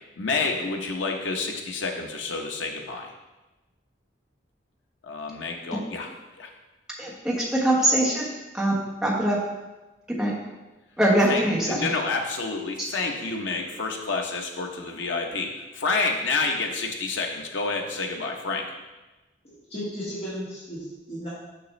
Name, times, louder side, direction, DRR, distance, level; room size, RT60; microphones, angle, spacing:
voice 1, 0.0-3.1 5.0-6.1 6.4-6.5 11.3-18.7, left 3 dB, 85° left, 2 dB, 0.8 m, -29 dB
voice 2, 7.0-8.2 8.5-9.4 10.2-10.3 11.0-11.9 12.8-12.9, right 1 dB, 5° right, -5 dB, 1.2 m, -23 dB
voice 3, 19.4-21.3, equal, 35° left, -9 dB, 1.7 m, -35 dB
6.6 x 6.0 x 3.2 m, 1.1 s
head